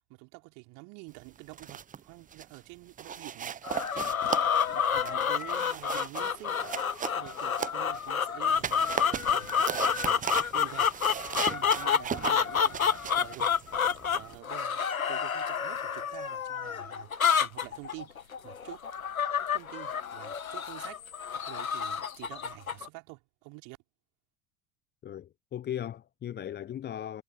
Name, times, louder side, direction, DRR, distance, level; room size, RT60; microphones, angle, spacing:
voice 1, 0.0-3.8 4.7-6.6 7.1-13.5 14.1-18.8 19.5-21.0 21.4-23.8, right 31 dB, 45° right, 4.4 m, -48 dB
sound 1, 1.4-2.0 2.3-2.6 3.0-8.1 8.5-14.4, right 8 dB, 20° right, 1.3 m, -37 dB
Chicken close, 3.6-22.9, left 7 dB, 75° left, 2.1 m, -29 dB
voice 2, 25.0-27.2, left 10 dB, 25° left, 1.2 m, -37 dB
figure-of-eight pair, 80°, 42 cm